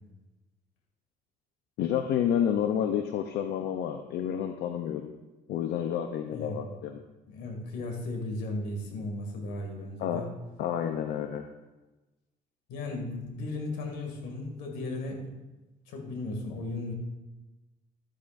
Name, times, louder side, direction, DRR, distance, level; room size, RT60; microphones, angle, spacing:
voice 1, 1.8-5.1 5.5-7.0 10.0-10.3 10.6-11.5, left 9 dB, 75° left, 6 dB, 0.7 m, -29 dB
voice 2, 6.3-6.7 7.3-10.3 12.7-15.2 15.9-16.9, left 2 dB, 90° left, 2 dB, 2.3 m, -36 dB
13.0 x 8.7 x 2.6 m, 1.1 s
cardioid pair, 110°, 17 cm